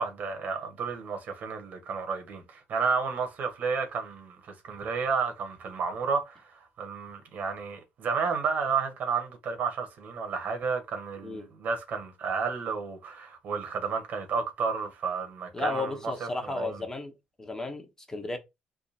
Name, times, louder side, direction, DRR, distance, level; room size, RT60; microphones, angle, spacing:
voice 1, 0.0-16.8, right 5 dB, 60° right, 1.3 m, -31 dB
voice 2, 15.5-17.1 17.4-18.4, left 3 dB, 15° left, 1.1 m, -34 dB
3.6 x 2.1 x 4.2 m
cardioid pair, 90°, 3 cm